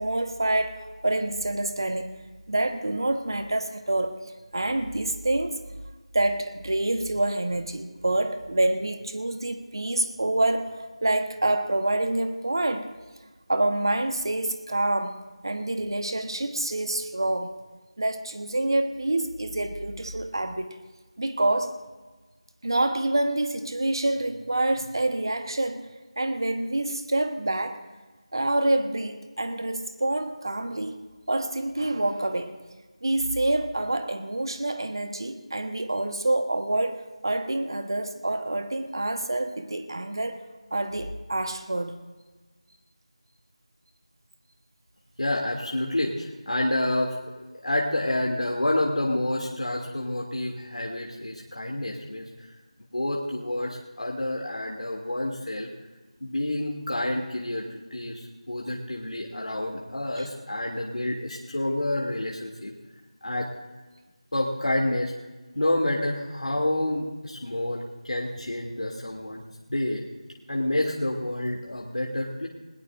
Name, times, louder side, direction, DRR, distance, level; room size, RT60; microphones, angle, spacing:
voice 1, 0.0-2.1 2.5-4.1 4.5-5.6 6.1-12.9 13.5-15.2 15.4-17.5 18.0-20.7 21.2-21.8 22.6-25.9 26.2-27.8 28.3-31.0 31.3-32.6 33.0-40.4 40.7-42.0 60.2-60.3, right 2 dB, 40° right, 8 dB, 1.2 m, -27 dB
voice 2, 45.2-47.2 47.6-52.3 52.9-55.7 56.2-62.7 63.2-63.5 64.3-65.1 65.5-69.4 69.7-70.0 70.5-72.5, left 1 dB, 80° left, -2 dB, 2.6 m, -28 dB
20.5 x 19.0 x 2.6 m, 1.2 s
figure-of-eight pair, 180°, 4 cm